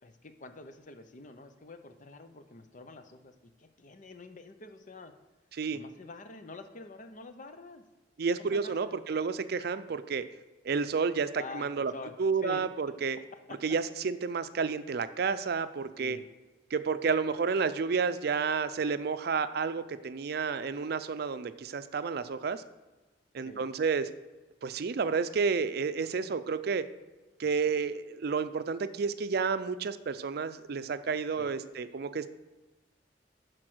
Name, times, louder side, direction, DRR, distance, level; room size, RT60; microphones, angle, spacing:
voice 1, 0.0-5.1 5.7-7.8 8.5-9.0 11.4-12.6 13.5-13.6 16.0-16.3 23.4-23.7 31.4-31.6, left 3 dB, 45° left, 8 dB, 0.8 m, -47 dB
voice 2, 8.2-10.2 10.6-11.9 12.2-13.2 13.6-16.2 16.7-22.6 23.3-24.1 24.6-26.8 27.4-32.3, right 5 dB, 60° right, 12 dB, 0.5 m, -30 dB
11.0 x 4.6 x 6.2 m, 1.2 s
head